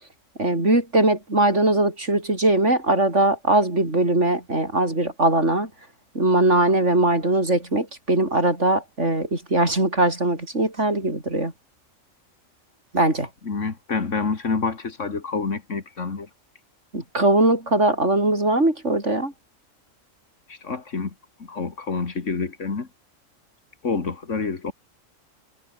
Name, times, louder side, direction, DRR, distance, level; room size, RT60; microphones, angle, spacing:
voice 1, 0.4-5.7 6.1-11.5 12.9-13.3 16.9-19.3, right 2 dB, 65° right, 6.5 m, -21 dB
voice 2, 13.5-16.3 20.6-21.1 21.5-22.9 23.8-24.7, left 4 dB, 65° left, 2.5 m, -27 dB
omnidirectional pair, 1.3 m